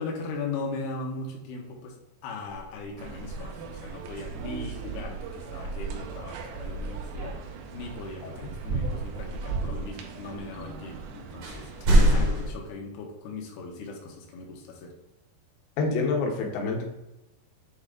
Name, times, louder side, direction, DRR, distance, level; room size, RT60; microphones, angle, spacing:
voice 1, 0.0-2.0 2.2-7.3 7.7-11.7 12.0-14.9, left 3 dB, 70° left, 0 dB, 3.0 m, -38 dB
sound 1, 2.5-3.3 4.0-5.0 8.5-8.6 10.7-10.8 11.4-12.5, right 1 dB, 55° right, 1.8 m, -25 dB
sound 2, 3.0-12.1, right 4 dB, 75° right, 2.3 m, -36 dB
voice 2, 15.8-16.8, left 3 dB, 85° left, 0 dB, 3.5 m, -27 dB
8.1 x 4.0 x 3.7 m, 1.0 s
omnidirectional pair, 5.0 m